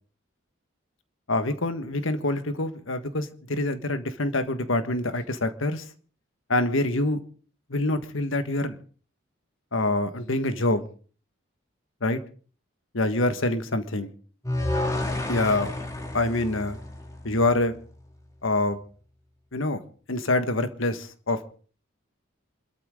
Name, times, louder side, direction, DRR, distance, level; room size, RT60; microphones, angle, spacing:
voice 1, 1.3-5.8 6.5-7.2 7.7-8.8 9.7-10.8 12.0-12.2 12.9-14.1 15.3-15.7 16.1-16.8 17.2-17.7 18.4-18.8 19.5-19.8 20.1-21.5, left 2 dB, 85° left, 9 dB, 1.6 m, -25 dB
sound 1, 14.4-17.6, left 1 dB, 15° left, 2.2 m, -30 dB
27.5 x 13.5 x 3.8 m, 0.42 s
head